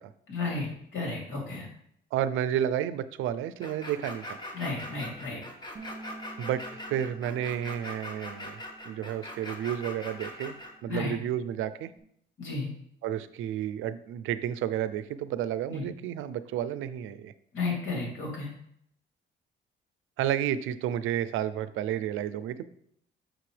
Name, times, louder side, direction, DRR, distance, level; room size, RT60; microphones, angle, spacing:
voice 1, 0.3-1.7 4.5-5.4 10.9-11.1 12.4-12.7 15.7-15.8 17.5-18.5, left 3 dB, 80° left, -2 dB, 2.9 m, -33 dB
voice 2, 2.1-4.4 6.4-10.5 10.8-11.9 13.0-17.3 20.2-22.6, right 10 dB, 90° right, 13 dB, 0.5 m, -31 dB
sound 1, 3.6-10.7, left 1 dB, 20° left, 1.4 m, -41 dB
Bass guitar, 5.8-12.0, right 2 dB, 20° right, 1.4 m, -50 dB
6.8 x 6.2 x 3.3 m, 0.69 s
cardioid pair, 90°, 20 cm